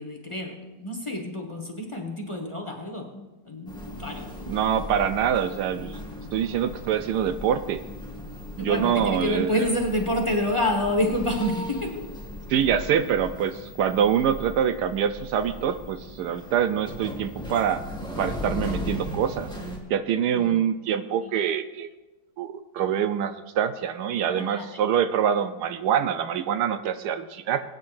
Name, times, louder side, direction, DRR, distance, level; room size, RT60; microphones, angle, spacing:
voice 1, 0.0-4.6 8.6-12.0 20.3-20.7 21.2-21.3 22.8-22.9 24.2-24.7, left 1 dB, 20° left, 1 dB, 1.3 m, -28 dB
sound 1, 3.7-19.8, left 1 dB, 5° left, 1.8 m, -37 dB
voice 2, 4.5-6.0 6.3-7.8 8.6-9.6 12.5-17.8 18.2-19.5 19.9-21.9 22.4-27.6, right 8 dB, 80° right, 10 dB, 1.2 m, -25 dB
21.5 x 9.5 x 2.6 m, 1.1 s
omnidirectional pair, 1.8 m